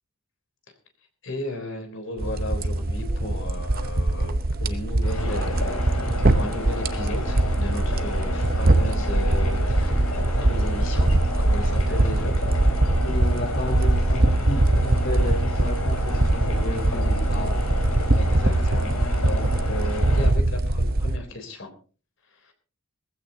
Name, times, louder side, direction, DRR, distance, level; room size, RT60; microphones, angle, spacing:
voice 1, 1.2-12.4 18.0-21.7 22.3-22.5, left 1 dB, 60° left, 6 dB, 3.5 m, -35 dB
sound 1, 2.2-21.2, right 1 dB, 45° right, 0.9 m, -22 dB
sound 2, 5.0-20.3, left 2 dB, 80° left, 4.9 m, -33 dB
voice 2, 13.0-17.6, left 1 dB, 45° left, 3 dB, 1.7 m, -32 dB
20.0 x 15.5 x 2.8 m, 0.37 s
head